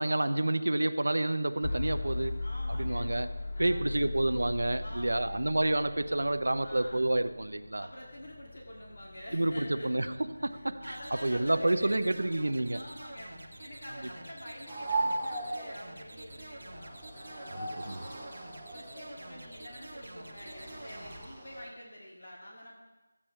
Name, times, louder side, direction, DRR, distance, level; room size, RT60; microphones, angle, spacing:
voice 1, 0.0-3.3 3.6-7.9 9.3-10.8 11.1-12.8 17.5-18.0, right 1 dB, 80° right, 0.6 m, -29 dB
sound 1, 1.6-17.6, left 2 dB, 25° left, 0.5 m, -41 dB
voice 2, 2.4-3.1 3.5-4.0 4.8-5.4 6.6-7.1 7.8-10.1 10.5-12.2 12.7-18.4 18.7-22.7, equal, 55° left, 2.5 m, -47 dB
sound 2, 10.8-21.2, right 2 dB, 60° right, 1.4 m, -48 dB
sound 3, 14.7-21.6, right 2 dB, ahead, 0.9 m, -38 dB
14.5 x 8.5 x 3.3 m
figure-of-eight pair, 175°, 0 cm